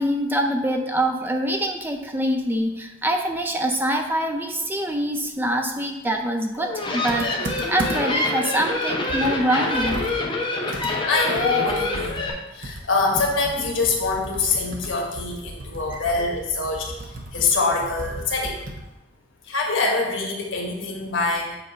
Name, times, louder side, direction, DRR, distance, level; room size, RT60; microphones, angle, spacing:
voice 1, 0.0-10.1 15.9-16.0, right 1 dB, 10° right, 4 dB, 0.4 m, -25 dB
sound 1, 6.5-12.3, left 2 dB, 25° left, 0.9 m, -26 dB
Computer keyboard, 7.1-8.3 8.7-8.8 9.1-19.0, right 1 dB, 45° right, 0.8 m, -36 dB
voice 2, 11.0-16.9 17.3-18.6 19.5-21.6, left 3 dB, 90° left, 0 dB, 1.3 m, -24 dB
7.8 x 2.7 x 5.1 m, 0.97 s
head